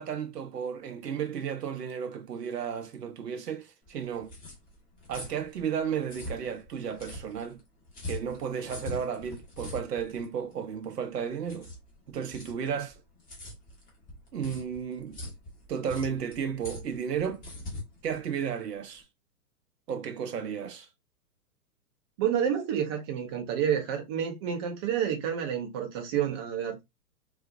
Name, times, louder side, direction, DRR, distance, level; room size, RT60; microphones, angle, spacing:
voice 1, 0.0-4.3 5.1-7.6 8.1-11.7 12.1-13.0 14.3-15.2 15.7-17.4 18.0-19.0 19.9-20.9, right 7 dB, 85° right, 0.6 m, -33 dB
sound 1, 3.8-19.0, left 2 dB, 15° left, 1.1 m, -43 dB
voice 2, 22.2-26.8, right 9 dB, 15° right, 0.4 m, -29 dB
3.9 x 2.4 x 2.4 m
hypercardioid pair, 120°, 47 cm